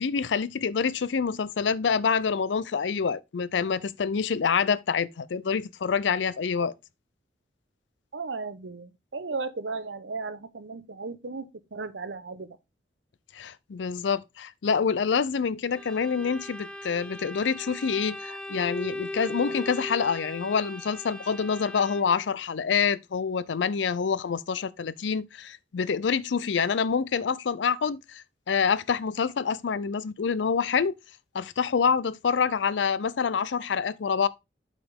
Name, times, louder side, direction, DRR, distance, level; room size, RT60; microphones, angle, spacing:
voice 1, 0.0-6.7 13.3-31.0 31.3-34.3, left 6 dB, 85° left, 0.5 m, -27 dB
voice 2, 8.1-12.5, right 4 dB, 85° right, 0.8 m, -35 dB
Bowed string instrument, 15.7-22.3, left 1 dB, 5° left, 0.5 m, -39 dB
8.4 x 5.0 x 3.5 m
head